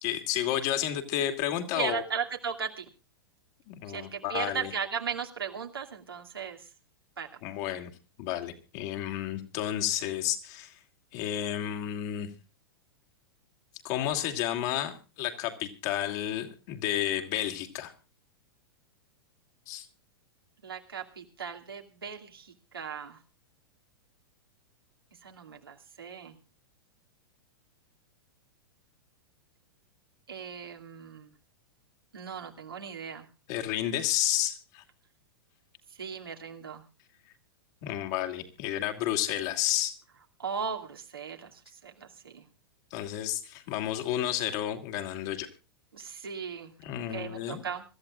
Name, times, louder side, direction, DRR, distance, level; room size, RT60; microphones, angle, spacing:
voice 1, 0.0-2.0 3.7-4.7 7.4-7.9 8.2-10.8 11.1-12.3 13.8-17.9 19.7-19.9 33.5-34.8 37.8-40.0 42.9-45.5 46.8-47.6, left 12 dB, 45° left, 5 dB, 2.6 m, -31 dB
voice 2, 1.7-2.8 3.8-6.7 7.2-7.3 20.6-23.2 25.2-26.4 30.3-31.3 32.1-33.3 36.0-36.8 40.4-42.5 45.9-47.8, right 6 dB, 80° right, 1 dB, 2.6 m, -37 dB
26.0 x 14.0 x 2.5 m, 0.32 s
figure-of-eight pair, 100°, 12 cm